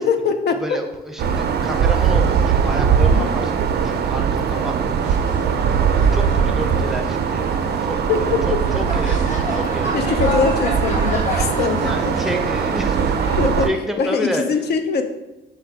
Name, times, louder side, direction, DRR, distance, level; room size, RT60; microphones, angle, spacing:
voice 1, 0.0-0.8 3.0-3.3 8.1-8.2 9.9-12.1 13.4-13.7 14.0-15.0, left 5 dB, 55° left, 8 dB, 0.5 m, -22 dB
voice 2, 0.6-5.7 6.1-10.0 11.8-14.7, equal, ahead, 3 dB, 0.6 m, -30 dB
sound 1, 1.2-13.7, right 7 dB, 55° right, 0.4 m, -20 dB
sound 2, 5.0-13.4, left 1 dB, 40° left, 1.3 m, -31 dB
4.5 x 2.2 x 4.6 m, 0.98 s
cardioid pair, 90°, 20 cm